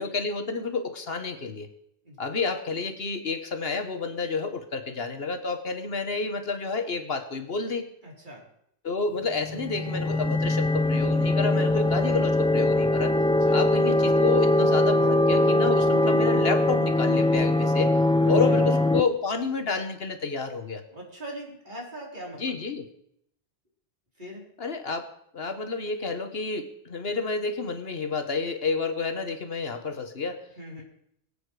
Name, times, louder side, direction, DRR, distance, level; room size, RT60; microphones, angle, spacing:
voice 1, 0.0-1.7 2.2-7.9 8.8-13.1 13.5-17.9 18.2-20.8 22.4-22.9 24.6-25.1 25.3-30.5, left 4 dB, 60° left, 8 dB, 1.4 m, -30 dB
voice 2, 8.0-8.4 11.3-11.6 13.2-13.6 18.2-18.7 20.9-22.6 24.1-24.5 30.6-30.8, right 1 dB, 45° right, -3 dB, 4.8 m, -41 dB
sound 1, 9.4-19.0, left 1 dB, 5° left, 0.4 m, -22 dB
22.5 x 8.6 x 4.8 m, 0.73 s
omnidirectional pair, 1.1 m